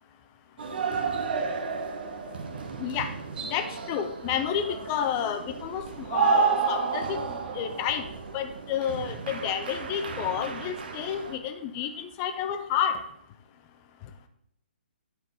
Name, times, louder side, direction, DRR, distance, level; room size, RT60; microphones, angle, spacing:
sound 1, 0.6-11.4, right 5 dB, 60° right, 1.3 m, -31 dB
voice 1, 3.5-5.8 6.1-7.2 7.5-8.1 8.3-13.0, left 9 dB, 30° left, 8 dB, 0.8 m, -30 dB
10.5 x 4.6 x 4.2 m, 0.76 s
hypercardioid pair, 135°, 6 cm